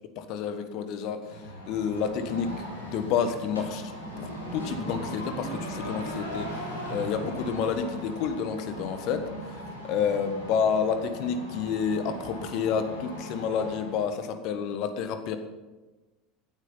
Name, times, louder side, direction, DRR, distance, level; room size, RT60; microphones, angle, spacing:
voice 1, 0.3-1.2 1.7-2.5 2.8-3.8 4.2-6.5 6.9-9.2 9.8-15.4, left 6 dB, 50° left, 9 dB, 1.4 m, -29 dB
sound 1, 1.2-14.1, equal, 80° left, 3.8 m, -38 dB
16.0 x 9.6 x 5.7 m, 1.2 s
figure-of-eight pair, 70°, 0 cm